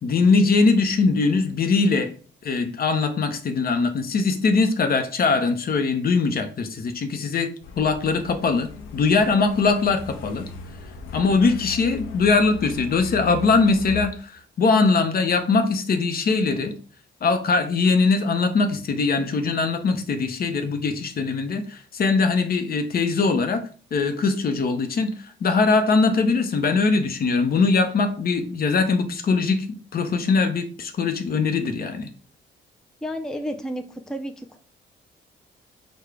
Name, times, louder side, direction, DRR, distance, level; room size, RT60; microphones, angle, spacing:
voice 1, 0.0-2.1 2.4-10.5 11.1-16.7 17.2-23.6 23.9-25.1 25.4-32.1, left 4 dB, 50° left, 8 dB, 0.7 m, -21 dB
Truck, 7.6-14.1, left 7 dB, 85° left, 0.7 m, -39 dB
voice 2, 33.0-34.6, equal, 5° left, 5 dB, 0.5 m, -31 dB
4.7 x 2.3 x 4.7 m, 0.41 s
cardioid pair, 90°, 20 cm